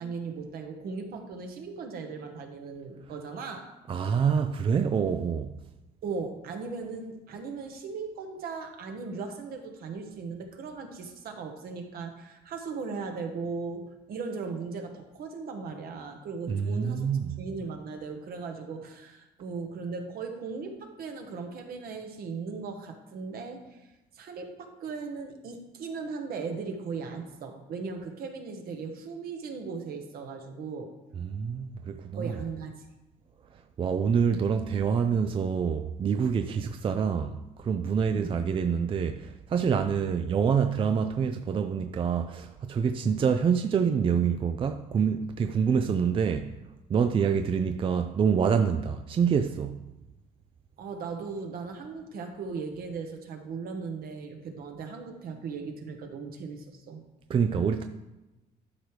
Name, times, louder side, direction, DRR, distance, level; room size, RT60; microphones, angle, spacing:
voice 1, 0.0-3.7 6.0-23.8 24.1-30.9 32.1-32.9 38.1-38.4 50.8-57.0, right 4 dB, 65° right, 1.2 m, -38 dB
voice 2, 3.9-5.5 16.5-17.3 31.2-32.4 33.8-46.6 46.9-49.8 57.3-57.8, right 6 dB, 30° right, 0.4 m, -26 dB
12.0 x 4.6 x 3.3 m
cardioid pair, 110°, 17 cm